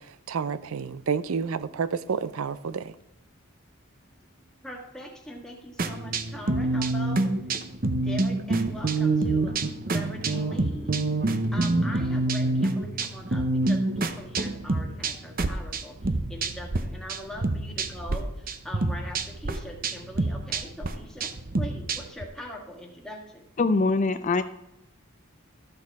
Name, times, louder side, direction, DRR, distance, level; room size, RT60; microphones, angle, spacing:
voice 1, 0.3-2.9, right 6 dB, 75° right, 0.5 m, -29 dB
voice 2, 4.6-7.3 8.0-9.5 9.8-10.9 11.5-15.9 16.3-18.3 18.6-21.3 21.6-23.2, equal, 5° left, 1.7 m, -41 dB
sound 1, 5.8-16.8 17.1-18.2 18.5-22.2, right 2 dB, 40° right, 0.7 m, -27 dB
voice 3, 23.6-24.4, left 3 dB, 35° left, 0.3 m, -23 dB
13.5 x 6.6 x 4.7 m
head